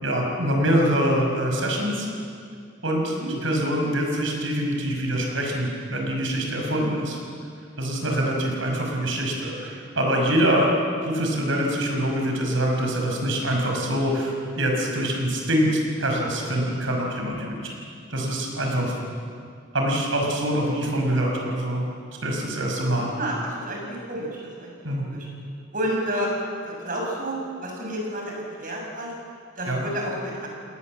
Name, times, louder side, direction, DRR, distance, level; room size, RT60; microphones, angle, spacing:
voice 1, 0.0-2.1 2.8-7.2 7.8-10.8 11.0-17.6 18.1-18.9 19.7-21.8 22.2-23.1 24.8-25.1 29.7-29.8, equal, 70° right, 0 dB, 5.8 m, -24 dB
voice 2, 23.2-24.7 25.0-25.3 25.7-26.3 26.6-28.3 28.6-29.1 29.6-30.5, right 1 dB, 40° right, -1 dB, 6.8 m, -30 dB
29.5 x 19.0 x 7.6 m, 2.3 s
head